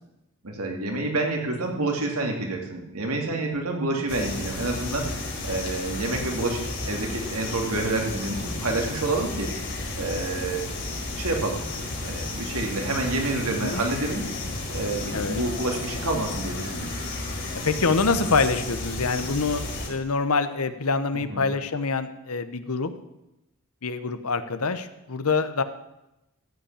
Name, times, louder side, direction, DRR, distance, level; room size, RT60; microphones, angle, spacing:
voice 1, 0.4-5.1 5.4-9.5 10.0-10.7 11.2-11.6 12.0-14.3 14.7-17.0 21.1-21.4, right 2 dB, 80° right, 1 dB, 2.5 m, -28 dB
sound 1, 4.1-19.9, left 2 dB, 55° left, 4.0 m, -33 dB
voice 2, 17.5-22.9 23.8-25.6, left 4 dB, 80° left, 11 dB, 0.9 m, -25 dB
14.5 x 5.6 x 8.8 m, 0.92 s
head